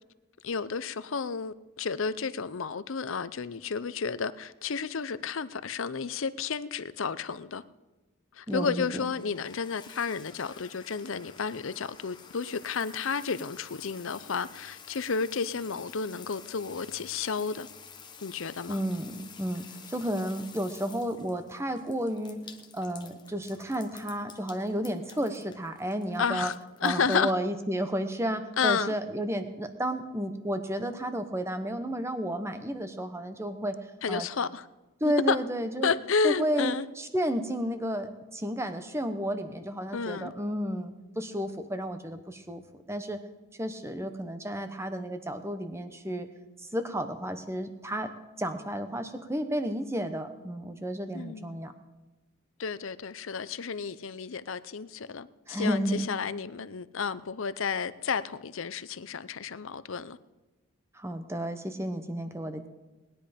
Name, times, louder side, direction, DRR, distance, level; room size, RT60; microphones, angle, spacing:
voice 1, 0.4-7.6 8.3-17.7 18.2-18.8 26.2-26.5 26.8-27.3 28.6-28.9 34.0-34.6 35.0-35.4 35.8-36.9 39.9-40.3 51.1-51.6 52.6-60.2, left 5 dB, 70° left, 0.6 m, -31 dB
sound 1, 8.5-27.3, left 6 dB, 20° left, 1.0 m, -51 dB
voice 2, 8.5-9.0 18.7-22.4 22.7-26.5 26.8-33.8 34.1-34.3 35.0-35.9 36.2-43.2 43.6-46.3 46.6-48.1 48.4-51.7 55.5-56.1 60.9-62.7, equal, 10° right, 0.9 m, -32 dB
19.5 x 10.5 x 5.2 m
head